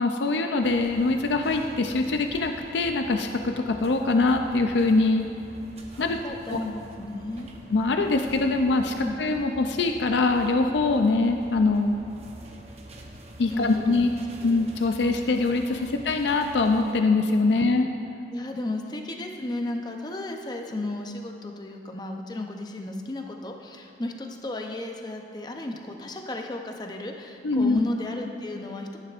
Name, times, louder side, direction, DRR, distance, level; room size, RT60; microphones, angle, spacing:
voice 1, 0.0-5.3 6.0-6.2 6.5-6.6 7.7-12.0 13.4-14.1 14.4-17.9 27.4-27.8, left 3 dB, 80° left, 5 dB, 0.5 m, -23 dB
sound 1, 0.6-16.9, right 1 dB, 35° right, 0.8 m, -46 dB
voice 2, 5.9-7.5 9.0-9.2 13.5-14.1 14.4-14.6 15.1-15.3 15.9-16.0 17.6-17.7 18.3-29.0, left 2 dB, 25° left, 3 dB, 0.6 m, -34 dB
12.5 x 10.5 x 2.5 m, 2.7 s
head